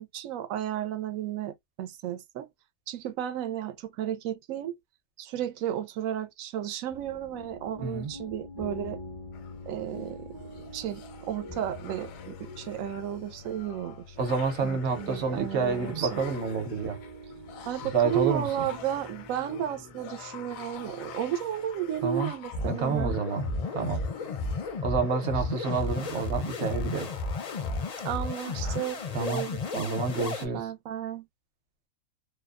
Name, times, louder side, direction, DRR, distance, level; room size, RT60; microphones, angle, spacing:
voice 1, 0.0-2.5 2.9-4.8 5.2-9.0 9.7-10.3 10.7-14.2 14.6-16.2 17.7-23.2 28.0-31.2, right 11 dB, 85° right, 1.0 m, -33 dB
sound 1, 6.9-24.7, left 1 dB, 30° right, 0.4 m, -46 dB
voice 2, 7.8-8.1 14.2-17.0 17.9-18.7 22.0-22.3 22.6-24.0 24.8-27.1 29.1-29.5 29.7-30.7, right 5 dB, 60° right, 1.0 m, -29 dB
sound 2, 9.3-29.2, left 8 dB, 85° left, 1.0 m, -46 dB
sound 3, 22.5-30.5, left 3 dB, 50° left, 0.4 m, -33 dB
2.6 x 2.1 x 2.2 m
omnidirectional pair, 1.4 m